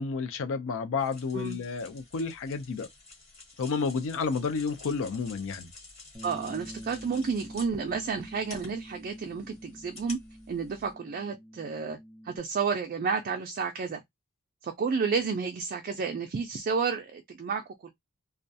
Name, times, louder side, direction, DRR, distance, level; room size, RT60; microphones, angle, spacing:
voice 1, 0.0-2.9 3.6-5.7, left 5 dB, 60° left, 0.4 m, -31 dB
sound 1, 1.0-10.9, left 3 dB, 30° left, 1.1 m, -50 dB
Bass guitar, 6.1-12.4, equal, 15° left, 0.7 m, -46 dB
voice 2, 6.2-10.2 10.5-12.0 12.3-14.0 14.6-17.9, right 5 dB, 40° right, 0.4 m, -31 dB
2.3 x 2.2 x 2.6 m
head